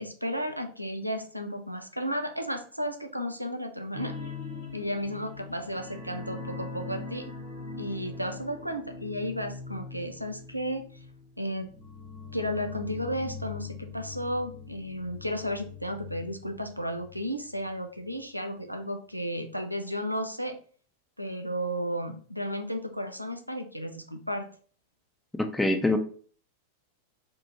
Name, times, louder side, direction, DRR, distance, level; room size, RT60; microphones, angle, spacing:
voice 1, 0.0-4.1 4.7-7.3 7.8-10.8 11.4-11.7 12.3-20.6 21.2-24.5, equal, 90° right, 6 dB, 0.4 m, -33 dB
sound 1, 3.9-17.2 17.5-17.7 18.1-18.2, left 4 dB, 55° left, 1.5 m, -42 dB
voice 2, 25.3-26.0, left 2 dB, 5° left, 6 dB, 0.5 m, -25 dB
3.7 x 2.4 x 2.7 m, 0.43 s
figure-of-eight pair, 90°, 0 cm